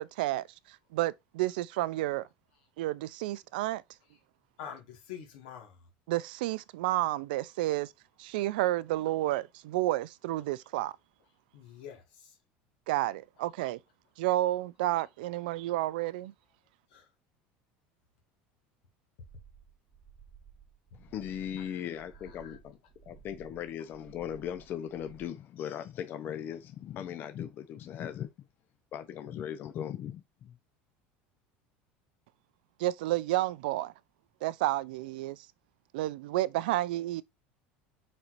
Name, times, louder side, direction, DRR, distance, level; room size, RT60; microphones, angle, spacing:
voice 1, 0.0-2.3 2.8-3.8 6.1-7.9 8.2-10.9 12.9-13.8 14.2-16.3 32.8-33.9 34.4-35.5 35.9-37.2, right 16 dB, 90° right, 0.3 m, -31 dB
voice 2, 4.6-5.9 11.5-12.4 16.9-17.1 21.6-22.6, left 8 dB, 85° left, 1.6 m, -47 dB
sound 1, 19.2-25.3, right 7 dB, 15° right, 1.0 m, -56 dB
voice 3, 20.9-22.8 23.1-28.3 28.9-30.6, left 9 dB, 45° left, 0.6 m, -38 dB
4.4 x 4.1 x 2.5 m
supercardioid pair, 125°, 5 cm